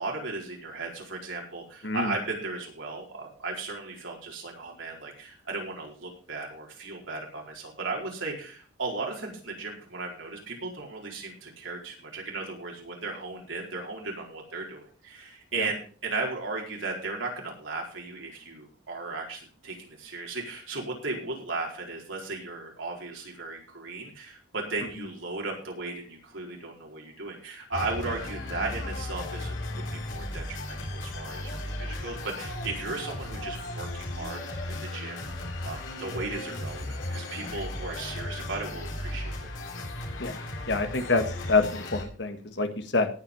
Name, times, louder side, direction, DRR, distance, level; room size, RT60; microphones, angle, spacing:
voice 1, 0.0-34.4 34.7-39.4, right 3 dB, 90° right, -1 dB, 4.6 m, -36 dB
sound 1, 27.7-42.0, left 1 dB, 90° left, 3.4 m, -36 dB
voice 2, 40.7-41.2 41.5-42.7 42.9-43.1, left 3 dB, 60° left, 7 dB, 1.5 m, -26 dB
18.0 x 6.0 x 5.5 m, 0.41 s
head